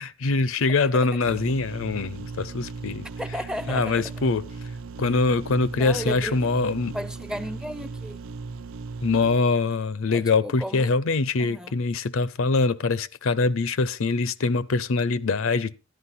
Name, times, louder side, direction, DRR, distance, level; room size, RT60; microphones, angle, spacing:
voice 1, 0.0-3.4 3.7-4.5 5.0-7.0 9.0-15.7, left 3 dB, 70° left, 0.6 m, -24 dB
sound 1, 1.2-9.4, right 4 dB, 75° right, 0.6 m, -37 dB
voice 2, 3.2-4.0 5.8-6.3 6.9-8.2 10.6-10.9 11.5-11.7, equal, 5° right, 0.5 m, -33 dB
13.0 x 10.5 x 4.2 m
head